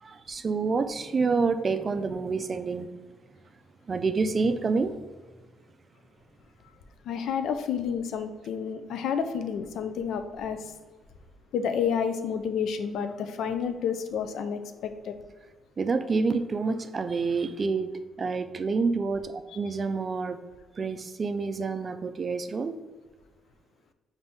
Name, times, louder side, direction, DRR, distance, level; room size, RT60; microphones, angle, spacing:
voice 1, 0.0-2.9 3.9-5.0 15.8-17.9 18.2-20.4 20.8-22.8, right 4 dB, 40° right, 9 dB, 0.3 m, -28 dB
voice 2, 7.1-10.7 11.5-15.1, left 7 dB, 75° left, 8 dB, 0.4 m, -30 dB
5.2 x 2.6 x 3.4 m, 1.3 s
cardioid pair, 90°, 0 cm